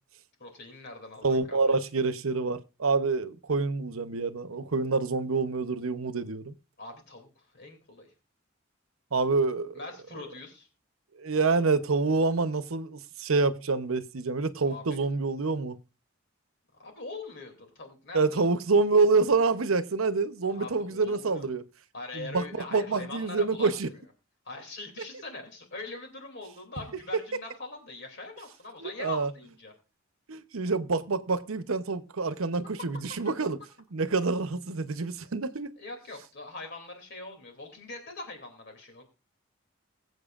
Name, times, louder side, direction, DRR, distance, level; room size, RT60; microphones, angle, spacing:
voice 1, 0.4-1.7 6.8-8.1 9.7-10.7 14.6-15.0 16.8-18.5 20.5-21.5 21.9-24.0 24.4-29.7 32.8-32.9 33.2-33.3 35.8-39.0, left 3 dB, 55° left, 2.8 m, -42 dB
voice 2, 1.2-6.5 9.1-9.7 11.2-15.8 18.1-21.6 22.1-22.4 22.7-23.9 28.8-29.3 30.3-33.6 33.9-35.7, right 4 dB, 90° right, 0.8 m, -27 dB
22.0 x 7.9 x 2.5 m
head